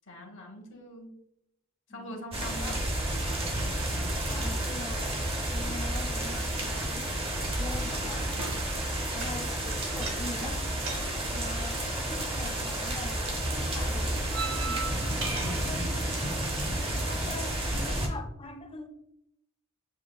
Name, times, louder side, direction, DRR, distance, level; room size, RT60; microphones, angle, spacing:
voice 1, 0.1-1.1 1.9-2.8, left 1 dB, 55° left, 0.9 m, -42 dB
voice 2, 1.9-2.5 4.3-7.1 7.6-8.3 9.1-10.6 11.3-15.9 17.0-18.9, left 3 dB, 25° left, 0.4 m, -43 dB
sound 1, 2.3-18.1, right 1 dB, 25° right, 0.7 m, -31 dB
sound 2, 3.2-18.2, right 4 dB, 60° right, 0.7 m, -43 dB
7.5 x 2.7 x 2.2 m
head